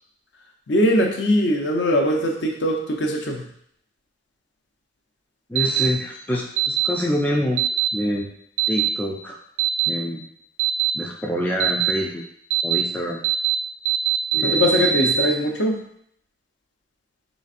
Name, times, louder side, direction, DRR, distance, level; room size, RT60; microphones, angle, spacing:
voice 1, 0.7-3.4 14.4-15.8, equal, 65° left, 1 dB, 0.6 m, -21 dB
voice 2, 5.5-7.6 7.9-8.3 8.7-9.4 9.9-10.2 10.9-12.2 12.6-13.2 14.3-15.0, equal, 10° left, -1 dB, 0.3 m, -26 dB
sound 1, 5.6-5.9 6.6-6.9 7.6-7.9 8.6-8.9 9.6-9.9 10.6-10.9 11.6-11.9 12.5-12.8 13.2-13.6 13.9-15.3, right 12 dB, 80° right, 0.3 m, -21 dB
4.0 x 3.9 x 2.5 m, 0.70 s
head